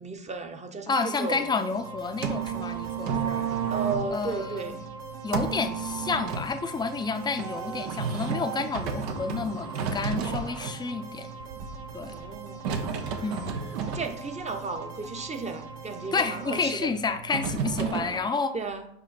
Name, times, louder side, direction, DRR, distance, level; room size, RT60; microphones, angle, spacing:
voice 1, 0.0-1.5 3.7-4.8 12.1-12.7 13.9-16.9 18.5-18.9, right 4 dB, 20° right, 6 dB, 0.9 m, -34 dB
voice 2, 0.9-3.4 4.1-4.9 5.2-11.3 11.9-12.2 13.2-13.6 16.1-18.6, left 4 dB, 15° left, 7 dB, 0.6 m, -30 dB
sound 1, 0.9-16.7, right 4 dB, 55° right, 1.2 m, -43 dB
sound 2, 1.7-18.2, right 6 dB, 75° right, 0.9 m, -34 dB
5.2 x 4.6 x 4.3 m, 0.71 s
hypercardioid pair, 75°, 32 cm